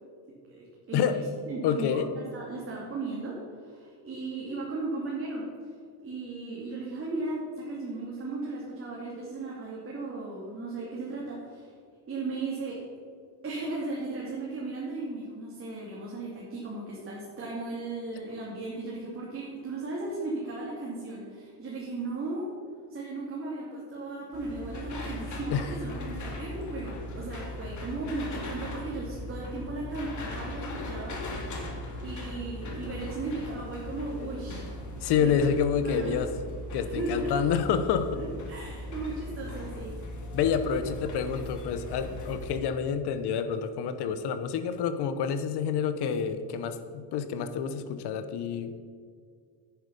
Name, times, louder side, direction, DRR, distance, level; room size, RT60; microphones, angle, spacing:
voice 1, 0.6-1.2 1.5-2.0 2.3-5.5 6.0-11.7 12.1-12.8 13.4-22.5 22.9-34.7 35.2-35.4 35.8-36.2 36.8-37.4 38.1-40.0, right 2 dB, 30° right, -5 dB, 2.6 m, -36 dB
voice 2, 1.6-2.1 25.5-25.7 35.0-36.3 36.7-38.2 40.3-48.8, left 7 dB, 60° left, 10 dB, 1.1 m, -28 dB
sound 1, 24.3-42.6, left 1 dB, 40° left, 2.3 m, -38 dB
10.0 x 9.7 x 5.4 m, 2.1 s
cardioid pair, 120°, 44 cm